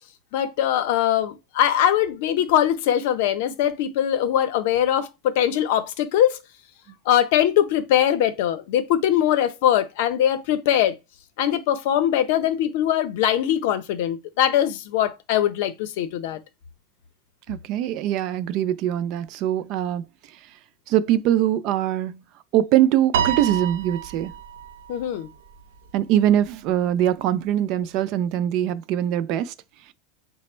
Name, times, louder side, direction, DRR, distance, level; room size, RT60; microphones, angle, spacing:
voice 1, 0.3-6.4 7.1-10.9 11.4-16.4 24.9-25.3, left 10 dB, 55° left, 0.6 m, -21 dB
voice 2, 17.5-20.0 20.9-22.2 22.5-24.3 25.9-29.5, right 11 dB, 40° right, 0.3 m, -22 dB
Piano, 23.1-25.6, right 8 dB, 90° right, 0.7 m, -28 dB
5.8 x 2.1 x 4.3 m
supercardioid pair, 175°, 0 cm